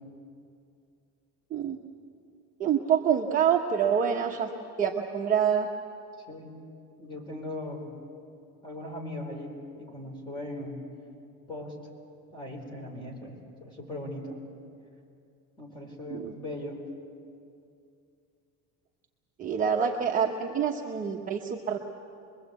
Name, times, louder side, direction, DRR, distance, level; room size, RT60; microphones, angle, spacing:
voice 1, 2.6-4.5 4.8-5.7 16.1-16.3 19.4-21.8, right 7 dB, 25° right, 1 dB, 1.0 m, -26 dB
voice 2, 7.0-7.9 8.6-10.8 11.5-11.7 12.3-14.4 15.6-16.8, left 1 dB, 15° left, 0 dB, 4.2 m, -39 dB
25.5 x 22.0 x 8.2 m, 2.5 s
cardioid pair, 170°, 32 cm